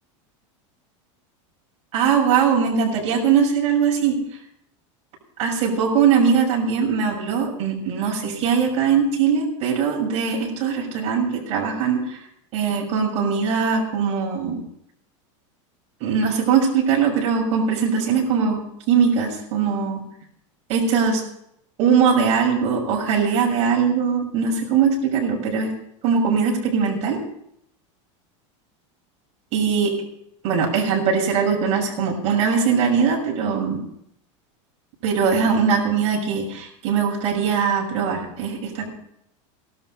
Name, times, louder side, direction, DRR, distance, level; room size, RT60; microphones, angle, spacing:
voice 1, 1.9-4.2 5.4-12.2 12.5-14.6 16.0-18.6 18.9-20.0 20.7-21.2 21.8-25.7 26.0-27.2 29.5-29.9 30.4-33.8 35.0-38.9, right 6 dB, 40° right, -1 dB, 6.6 m, -21 dB
18.0 x 12.5 x 5.6 m, 0.74 s
supercardioid pair, 150°, 16 cm